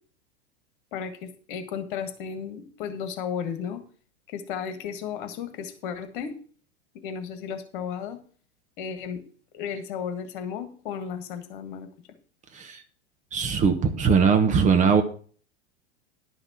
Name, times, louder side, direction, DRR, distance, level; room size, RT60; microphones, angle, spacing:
voice 1, 0.9-3.8 4.3-6.3 7.0-8.2 8.8-9.2 9.5-11.9, left 7 dB, 50° left, 9 dB, 1.6 m, -34 dB
voice 2, 13.3-15.0, right 6 dB, 20° right, 7 dB, 1.0 m, -20 dB
11.0 x 5.8 x 5.8 m, 0.43 s
figure-of-eight pair, 90°, 34 cm